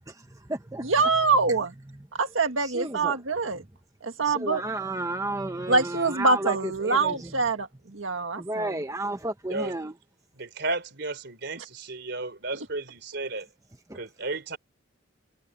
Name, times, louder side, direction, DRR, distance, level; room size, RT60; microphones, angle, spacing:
voice 1, 0.1-0.9 1.9-2.1 2.6-3.2 4.2-7.3 8.4-9.9 13.9-14.0, right 2 dB, 15° right, 0.9 m, -33 dB
voice 2, 0.8-1.7 2.2-3.6 4.0-4.6 5.7-7.7 7.9-8.7, right 3 dB, 85° right, 1.7 m, -24 dB
voice 3, 10.4-13.5 13.9-14.6, right 2 dB, 60° right, 4.2 m, -33 dB
head